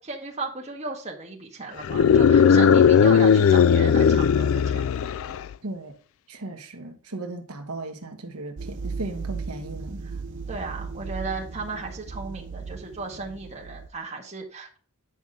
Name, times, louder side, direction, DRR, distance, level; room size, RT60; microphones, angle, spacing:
voice 1, 0.0-4.8 10.5-14.8, right 3 dB, 30° right, 1.7 m, -35 dB
sound 1, 1.8-5.5, left 7 dB, 60° left, 0.3 m, -17 dB
voice 2, 5.6-5.9 6.3-10.0, right 2 dB, 80° right, 1.2 m, -36 dB
sound 2, 8.6-13.9, right 4 dB, 55° right, 0.7 m, -36 dB
9.2 x 5.4 x 3.7 m
head